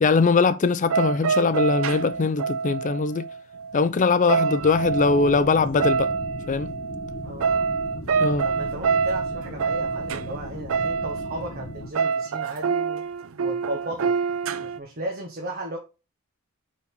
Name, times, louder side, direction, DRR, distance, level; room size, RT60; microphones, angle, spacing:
voice 1, 0.0-3.3 3.7-6.1 6.5-6.7 8.2-8.5, left 4 dB, 35° left, 0.4 m, -21 dB
sound 1, 0.9-3.8 4.1-11.5 11.7-14.8, right 5 dB, 75° right, 0.5 m, -26 dB
voice 2, 4.3-4.6 7.2-7.6 8.4-13.1 13.4-14.1 14.6-15.8, right 1 dB, 45° right, 1.4 m, -35 dB
sound 2, 4.6-11.9, left 1 dB, 55° left, 1.1 m, -38 dB
5.4 x 5.1 x 5.4 m
head